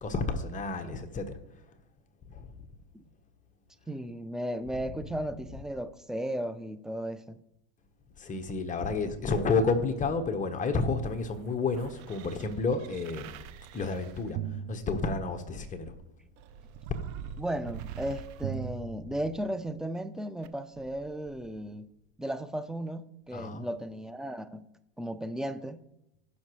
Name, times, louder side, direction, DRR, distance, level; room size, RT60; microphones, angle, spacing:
voice 1, 0.0-1.4 2.3-2.6 4.9-5.0 8.2-13.3 13.7-16.0 23.3-23.6, left 3 dB, 20° left, 1.1 m, -31 dB
voice 2, 3.9-7.4 17.4-21.9 22.2-24.7 25.0-25.8, right 1 dB, ahead, 0.4 m, -35 dB
sound 1, 11.0-15.6 16.4-19.7 20.4-20.5, right 9 dB, 50° right, 0.8 m, -42 dB
17.0 x 6.0 x 3.2 m
hypercardioid pair, 105°, 34 cm